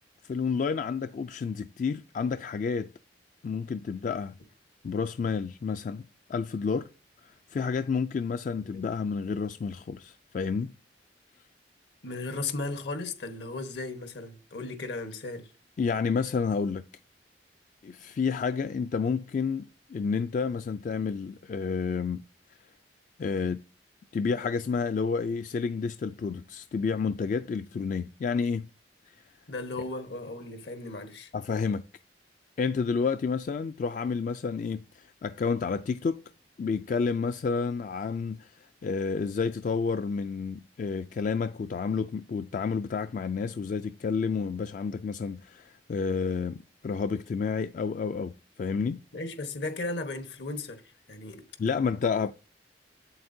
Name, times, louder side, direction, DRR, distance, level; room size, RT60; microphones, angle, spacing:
voice 1, 0.2-2.9 3.4-4.4 4.8-6.9 7.2-10.7 15.8-16.8 17.8-22.2 23.2-23.6 24.1-28.7 31.3-31.8 32.6-36.2 36.6-49.0 51.6-52.3, left 5 dB, 45° left, 0.3 m, -30 dB
voice 2, 12.0-15.5 29.5-31.3 49.1-50.8 51.1-51.5, left 3 dB, 75° left, 1.2 m, -36 dB
7.8 x 7.8 x 2.7 m
head